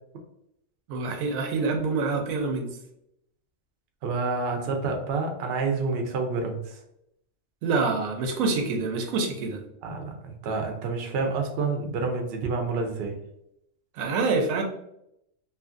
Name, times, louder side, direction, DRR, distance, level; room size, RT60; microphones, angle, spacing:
voice 1, 0.9-2.7 7.6-9.6 13.9-14.6, right 3 dB, 85° right, 4 dB, 1.0 m, -26 dB
voice 2, 4.0-6.8 9.8-13.2, right 4 dB, 60° right, 4 dB, 0.6 m, -28 dB
2.7 x 2.4 x 2.4 m, 0.78 s
omnidirectional pair, 1.4 m